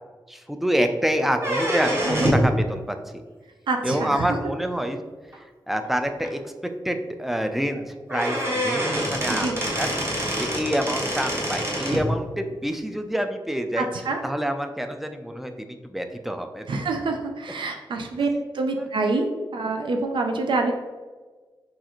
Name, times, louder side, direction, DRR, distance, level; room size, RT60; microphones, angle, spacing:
voice 1, 0.3-3.0 3.8-5.0 5.7-9.9 10.4-13.9 14.2-16.7 18.2-18.4 18.8-18.9, equal, 5° right, 6 dB, 0.3 m, -27 dB
sound 1, 1.3-2.5 4.3-4.4 5.3-5.4 5.8-5.9 6.2-6.3 7.7-7.8 8.1-12.1, equal, 30° right, 0.9 m, -25 dB
voice 2, 3.7-4.4 9.3-9.6 13.8-14.2 16.7-18.3 18.5-20.7, right 3 dB, 75° right, 3 dB, 0.4 m, -26 dB
6.3 x 2.5 x 2.9 m, 1.4 s
wide cardioid pair, 165°, 8 cm